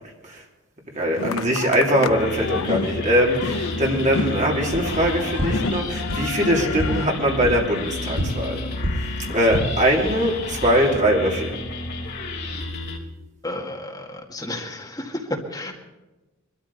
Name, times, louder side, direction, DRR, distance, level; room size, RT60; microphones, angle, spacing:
voice 1, 0.9-8.6 9.3-11.6, equal, 35° right, -1 dB, 3.1 m, -21 dB
sound 1, 1.2-7.1, left 3 dB, 75° left, 0.7 m, -29 dB
sound 2, 2.1-13.0, left 2 dB, 50° left, 3.5 m, -31 dB
sound 3, 4.7-4.8 5.3-5.5 6.0-6.2 6.7-6.9 7.4-7.5 8.1-8.2 8.8-8.9 9.3-9.6, equal, 75° right, 5.1 m, -26 dB
voice 2, 13.4-15.7, left 1 dB, 20° left, 1 dB, 2.0 m, -32 dB
22.0 x 13.0 x 4.2 m, 1.1 s
head